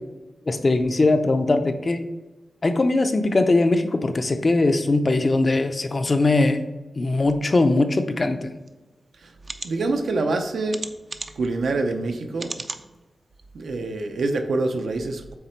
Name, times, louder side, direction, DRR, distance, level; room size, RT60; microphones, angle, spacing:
voice 1, 0.5-2.1 2.6-6.6 7.0-8.5, left 2 dB, 35° left, 8 dB, 0.5 m, -20 dB
sound 1, 8.7-8.8 9.4-9.7 10.7-11.5 12.4-12.8 13.4-13.5 13.8-13.9, right 3 dB, 35° right, 0.4 m, -34 dB
voice 2, 9.6-10.8 11.4-12.6 13.5-15.3, right 3 dB, 80° right, 5 dB, 0.7 m, -26 dB
8.1 x 3.3 x 4.4 m, 1.1 s
wide cardioid pair, 160°, 0 cm